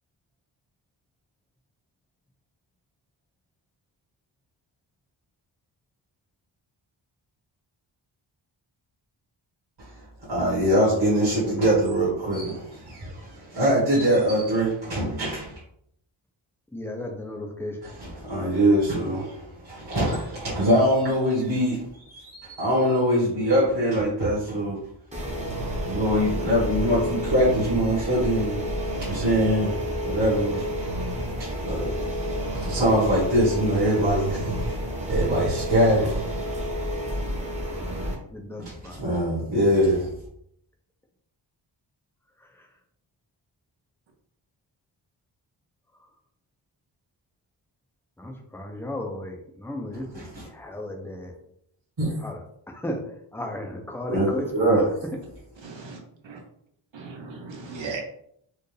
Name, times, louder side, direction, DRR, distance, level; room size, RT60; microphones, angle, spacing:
voice 1, 10.3-15.5 17.8-21.8 22.1-24.8 25.8-28.6 28.9-29.7 30.0-31.9 32.5-36.3 38.6-40.1 50.1-50.4 52.0-52.1 54.1-54.8, equal, 50° right, -7 dB, 1.5 m, -23 dB
voice 2, 16.7-17.8 37.7-39.0 42.4-42.7 48.2-51.3 52.2-52.4 52.7-53.0 53.3-54.9, left 1 dB, 5° left, 2 dB, 0.6 m, -35 dB
sound 1, 25.1-38.1, equal, 15° right, 0.9 m, -30 dB
voice 3, 55.6-56.4 56.9-58.0, right 4 dB, 65° right, 1 dB, 0.9 m, -37 dB
4.4 x 2.5 x 3.3 m, 0.70 s
wide cardioid pair, 135°, 49 cm